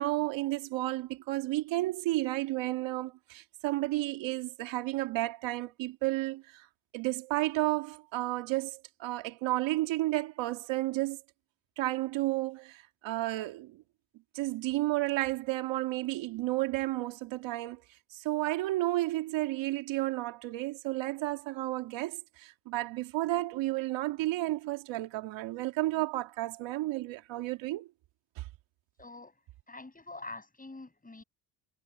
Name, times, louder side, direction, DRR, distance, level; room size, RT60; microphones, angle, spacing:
voice 1, 0.0-6.7 6.9-11.2 11.8-13.8 14.3-17.8 18.1-27.9 28.4-28.5, right 18 dB, 85° right, 2.9 m, -32 dB
voice 2, 29.0-29.4 29.7-31.2, left 2 dB, 20° left, 7.6 m, -45 dB
supercardioid pair, 70°, 44 cm